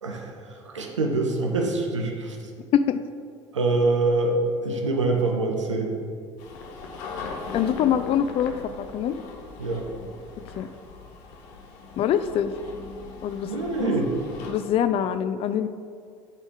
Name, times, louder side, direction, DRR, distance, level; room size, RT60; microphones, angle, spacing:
voice 1, 0.0-2.4 3.5-4.4 4.6-5.9 9.6-9.8 13.4-14.1, right 3 dB, 85° right, 2 dB, 0.8 m, -25 dB
sound 1, 6.4-14.5, left 3 dB, 65° left, 0.9 m, -39 dB
voice 2, 7.5-9.2 10.6-10.7 12.0-12.5 13.2-13.5 13.8-13.9 14.5-15.7, left 9 dB, 40° left, 12 dB, 0.4 m, -24 dB
9.7 x 4.1 x 3.7 m, 2.3 s
figure-of-eight pair, 65°, 15 cm